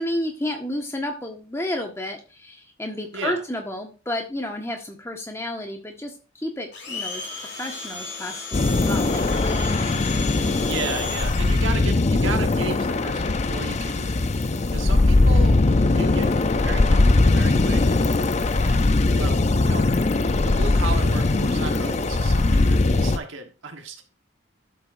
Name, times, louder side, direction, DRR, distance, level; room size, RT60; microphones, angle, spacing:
voice 1, 0.0-7.3 7.6-10.0, left 1 dB, 15° left, 3 dB, 1.4 m, -31 dB
voice 2, 3.1-3.4 10.6-14.1 14.7-15.6 15.9-16.3 16.6-18.1 18.6-20.1 20.4-24.0, right 3 dB, 65° right, 4 dB, 1.3 m, -34 dB
Domestic sounds home sounds, 6.7-11.8, left 4 dB, 55° left, 2.4 m, -35 dB
sound 1, 8.5-23.2, left 2 dB, 35° left, 0.5 m, -20 dB
12.5 x 7.5 x 2.6 m, 0.33 s
head